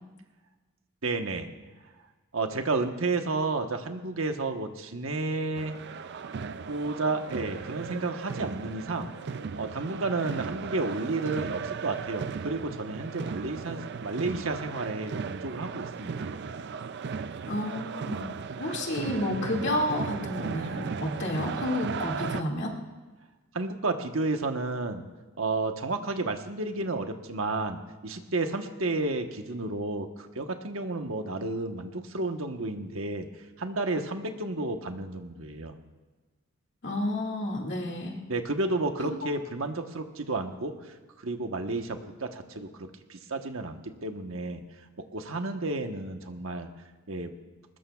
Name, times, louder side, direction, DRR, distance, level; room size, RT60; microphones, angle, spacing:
voice 1, 1.0-1.5 2.3-5.8 6.7-9.1 9.6-16.3 23.5-25.1 25.4-33.3 33.6-35.7 38.3-40.7 41.2-44.6 45.0-46.7 47.1-47.3, right 3 dB, 75° right, 5 dB, 1.2 m, -31 dB
sound 1, 5.5-22.4, right 5 dB, 55° right, 0.4 m, -36 dB
voice 2, 17.5-18.3 18.6-22.8 36.8-38.2 39.0-39.1, left 1 dB, 55° left, -1 dB, 2.2 m, -30 dB
22.0 x 20.0 x 2.4 m, 1.3 s
head